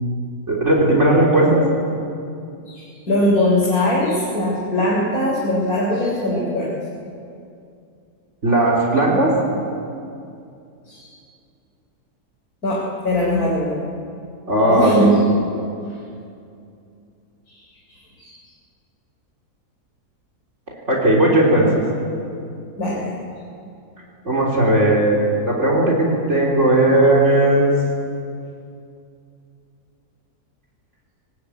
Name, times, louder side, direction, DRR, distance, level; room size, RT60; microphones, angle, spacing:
voice 1, 0.5-1.6 8.4-9.3 14.5-15.2 20.9-21.8 24.3-25.2 25.5-27.7, right 1 dB, 45° right, -2 dB, 4.1 m, -16 dB
voice 2, 2.7-6.8 10.9-11.1 12.6-13.8 14.7-15.2 18.2-18.4 22.8-23.2, left 1 dB, 65° left, -4 dB, 4.1 m, -21 dB
22.0 x 19.5 x 9.2 m, 2.5 s
omnidirectional pair, 1.7 m